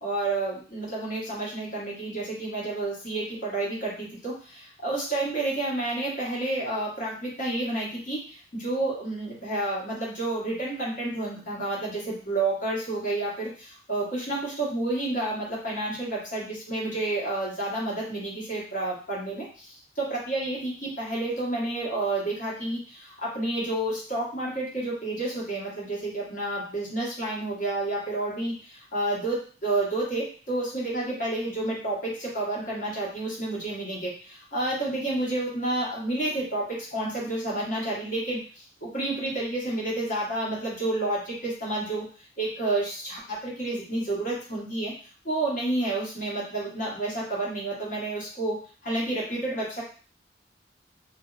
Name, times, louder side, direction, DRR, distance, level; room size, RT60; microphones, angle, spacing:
voice 1, 0.0-42.1 42.4-44.9 45.2-49.8, right 2 dB, 50° left, -6 dB, 1.1 m, -30 dB
2.5 x 2.0 x 2.3 m, 0.40 s
head